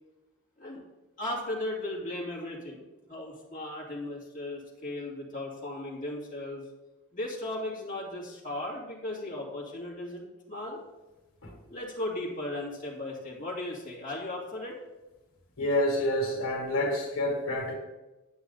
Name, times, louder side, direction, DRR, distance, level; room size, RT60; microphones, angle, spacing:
voice 1, 1.2-2.8 3.1-6.6 7.1-10.8 11.7-14.8, left 1 dB, 35° left, -4 dB, 2.3 m, -36 dB
voice 2, 15.6-17.7, left 1 dB, 85° left, 1 dB, 1.9 m, -28 dB
8.4 x 8.0 x 4.0 m, 1.1 s
head